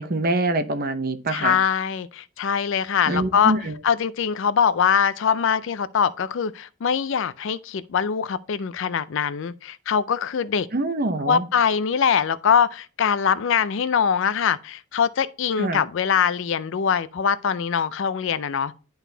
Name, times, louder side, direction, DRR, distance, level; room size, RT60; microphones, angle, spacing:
voice 1, 0.0-1.6 3.1-3.8 10.7-11.4 15.6-15.8, right 2 dB, 40° right, 0.7 m, -25 dB
voice 2, 1.3-3.5 3.8-10.7 11.3-18.7, left 7 dB, 55° left, 0.4 m, -23 dB
11.0 x 4.0 x 2.7 m
head